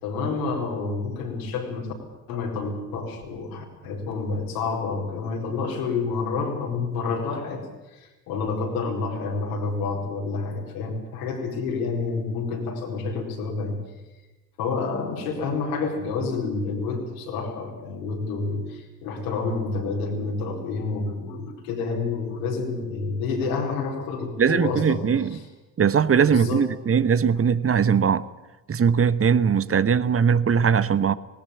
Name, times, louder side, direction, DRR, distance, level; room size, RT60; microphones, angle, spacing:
voice 1, 0.0-1.9 2.3-7.6 7.9-13.8 14.6-25.4 26.3-26.6, left 4 dB, 70° left, 0 dB, 4.5 m, -29 dB
voice 2, 24.4-25.4 25.8-28.2 28.7-31.1, right 7 dB, 30° right, 16 dB, 1.1 m, -20 dB
19.5 x 18.5 x 8.5 m, 1.1 s
figure-of-eight pair, 45°, 46 cm